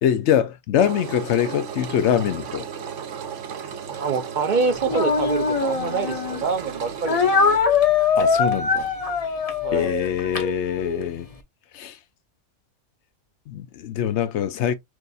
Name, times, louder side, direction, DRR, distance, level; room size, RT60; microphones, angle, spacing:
voice 1, 0.0-2.7 8.2-8.9 9.7-11.3 11.7-12.0 13.5-14.7, left 9 dB, 70° left, 0.8 m, -23 dB
Engine, 0.8-7.6, right 7 dB, 70° right, 1.0 m, -34 dB
voice 2, 4.0-7.2 9.6-9.9, right 4 dB, 45° right, 0.7 m, -25 dB
Speech, 4.9-6.4 7.1-11.1, left 5 dB, 35° left, 0.6 m, -22 dB
6.1 x 2.5 x 2.6 m
omnidirectional pair, 1.3 m